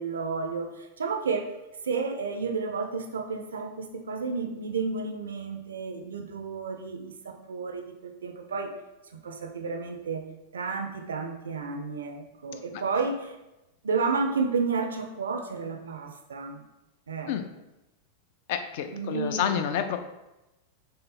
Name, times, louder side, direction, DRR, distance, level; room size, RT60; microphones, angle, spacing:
voice 1, 0.0-1.5 1.8-8.7 9.1-10.2 10.5-13.4 13.8-16.6 17.1-17.3 18.9-19.6, right 4 dB, 65° right, 4 dB, 0.4 m, -31 dB
voice 2, 18.5-20.0, left 8 dB, 50° left, 7 dB, 0.3 m, -29 dB
3.3 x 2.8 x 4.0 m, 0.98 s
figure-of-eight pair, 90°, 0 cm